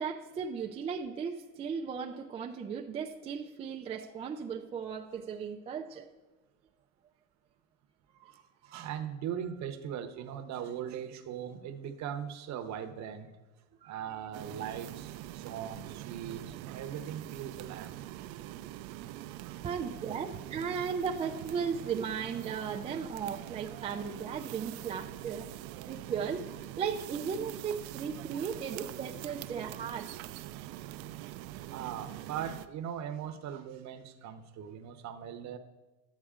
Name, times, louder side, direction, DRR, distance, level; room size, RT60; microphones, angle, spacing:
voice 1, 0.0-6.1 8.2-8.8 13.8-14.0 19.6-25.5 25.9-26.5 26.8-30.1, right 6 dB, 15° right, 1 dB, 0.3 m, -36 dB
voice 2, 8.7-13.3 13.8-18.4 18.9-19.0 19.3-19.6 31.7-35.6, right 9 dB, 40° right, 9 dB, 0.9 m, -40 dB
sound 1, 14.3-32.7, right 14 dB, 70° right, 0.6 m, -44 dB
11.5 x 8.4 x 3.7 m, 1.2 s
supercardioid pair, 130°, 42 cm